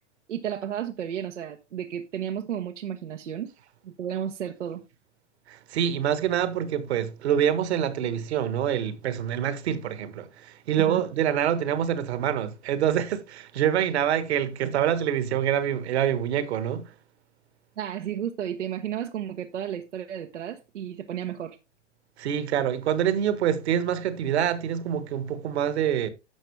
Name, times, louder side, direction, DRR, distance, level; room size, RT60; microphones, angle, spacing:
voice 1, 0.3-3.5 3.8-4.8 10.8-11.0 17.8-21.6, right 9 dB, 75° right, 1.1 m, -33 dB
voice 2, 5.5-16.9 22.2-26.1, right 9 dB, 60° right, 1.6 m, -26 dB
11.5 x 6.6 x 3.3 m
hypercardioid pair, 115°, 36 cm